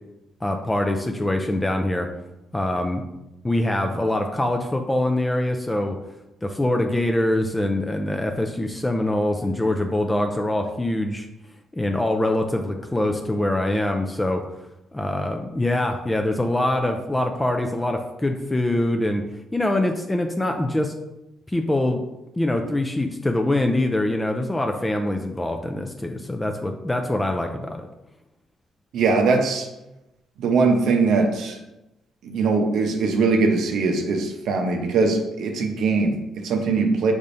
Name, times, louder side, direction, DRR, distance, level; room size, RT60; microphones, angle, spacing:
voice 1, 0.4-2.1 2.5-3.0 3.4-6.0 6.4-11.3 11.7-14.4 14.9-19.2 19.5-20.9 21.5-22.0 22.4-27.9, left 1 dB, 15° left, 4 dB, 0.4 m, -24 dB
voice 2, 28.9-29.7 30.4-31.6 32.2-37.1, right 4 dB, 75° right, 4 dB, 0.7 m, -21 dB
5.4 x 3.5 x 2.6 m, 0.93 s
cardioid pair, 90°, 0 cm